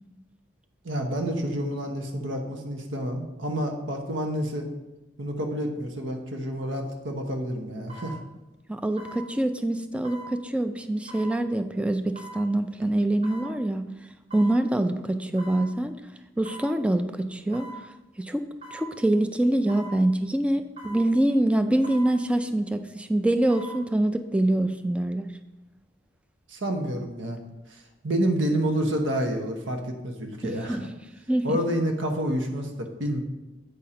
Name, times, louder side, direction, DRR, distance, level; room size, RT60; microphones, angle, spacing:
voice 1, 0.8-4.6 5.2-8.2 26.5-27.4 27.7-30.9 31.4-33.2, right 1 dB, 85° right, 4 dB, 1.0 m, -29 dB
sound 1, 6.7-6.9 7.9-8.1 9.0-9.2 10.0-10.3 11.1-11.3 12.2-12.4 13.2-13.5 14.3-14.6 15.4-15.6 16.4-16.7 17.5-17.8 18.6-18.9 19.7-19.9 20.8-21.0 21.8-22.1 23.3-23.8 24.2-24.3, right 3 dB, 35° right, 2.6 m, -41 dB
voice 2, 8.7-13.9 14.3-15.9 16.4-17.7 18.2-18.4 18.7-25.3 30.4-30.8 31.3-31.6, right 1 dB, 5° right, 8 dB, 0.3 m, -25 dB
8.4 x 4.3 x 4.9 m, 1.0 s
head